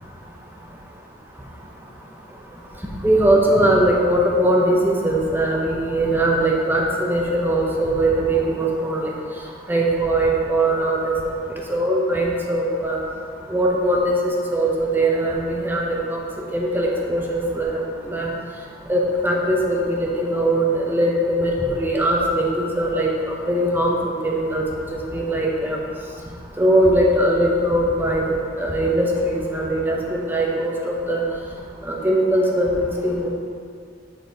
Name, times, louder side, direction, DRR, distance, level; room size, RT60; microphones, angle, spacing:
voice 1, 3.0-9.1 9.7-13.0 13.5-16.2 16.5-17.8 18.1-18.3 18.9-23.1 23.5-24.6 24.9-25.8 26.6-28.2 28.6-31.2 31.9-33.3, right 1 dB, 10° right, -2 dB, 0.7 m, -20 dB
7.2 x 4.1 x 3.9 m, 2.1 s
head